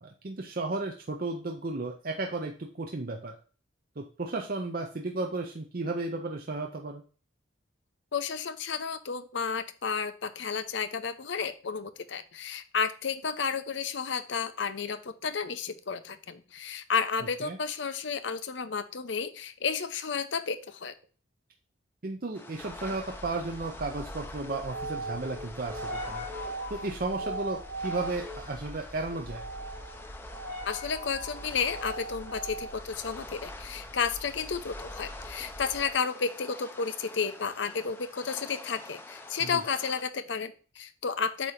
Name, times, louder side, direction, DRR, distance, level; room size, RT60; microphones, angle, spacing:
voice 1, 0.0-3.3 4.0-7.0 17.4-17.6 22.0-26.2 26.7-29.4 39.4-39.6, right 2 dB, 45° right, 3 dB, 0.6 m, -34 dB
voice 2, 8.1-20.9 30.6-41.5, left 6 dB, 65° left, 10 dB, 0.6 m, -32 dB
sound 1, 22.3-40.0, left 2 dB, 10° left, 0.6 m, -46 dB
sound 2, 22.6-35.9, right 1 dB, 70° right, 3.0 m, -40 dB
8.4 x 2.9 x 5.0 m, 0.38 s
head